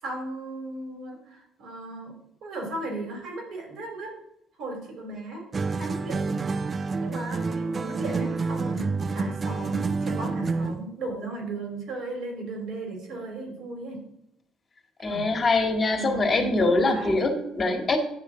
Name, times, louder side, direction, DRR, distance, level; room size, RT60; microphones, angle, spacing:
voice 1, 0.0-2.1 2.4-4.1 4.6-5.4 5.7-6.4 7.0-14.0 15.0-15.3 15.9-17.2, right 2 dB, 65° right, 1 dB, 3.0 m, -36 dB
sound 1, 5.5-10.9, right 4 dB, 40° right, 0.4 m, -28 dB
voice 2, 15.0-18.0, left 2 dB, 40° left, 3 dB, 2.0 m, -23 dB
9.6 x 3.3 x 6.2 m, 0.79 s
hypercardioid pair, 55°, 0 cm